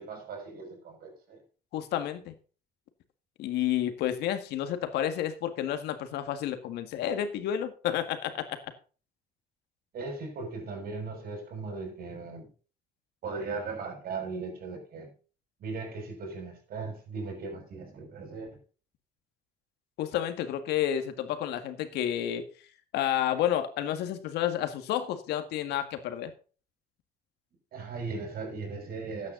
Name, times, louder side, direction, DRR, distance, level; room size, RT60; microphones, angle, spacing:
voice 1, 0.0-1.4 9.9-12.5 13.2-15.1 15.6-18.6 27.7-29.3, right 4 dB, 60° right, 6.0 m, -38 dB
voice 2, 1.7-2.4 3.4-8.5 20.0-22.4 22.9-26.3, left 11 dB, 80° left, 1.8 m, -30 dB
13.5 x 9.5 x 3.9 m
cardioid pair, 110°, 17 cm